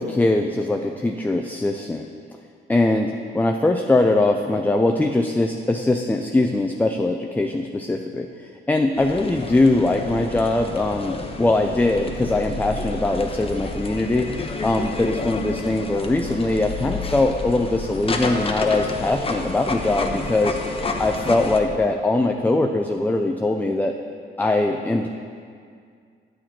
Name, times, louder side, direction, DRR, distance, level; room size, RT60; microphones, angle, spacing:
voice 1, 0.0-2.1 2.7-8.3 8.7-14.3 14.6-20.6 21.0-23.9 24.4-25.1, left 2 dB, 10° left, 4 dB, 0.4 m, -21 dB
sound 1, 9.0-21.6, left 3 dB, 30° left, 0.8 m, -30 dB
9.0 x 7.5 x 4.4 m, 2.2 s
cardioid pair, 90°, 20 cm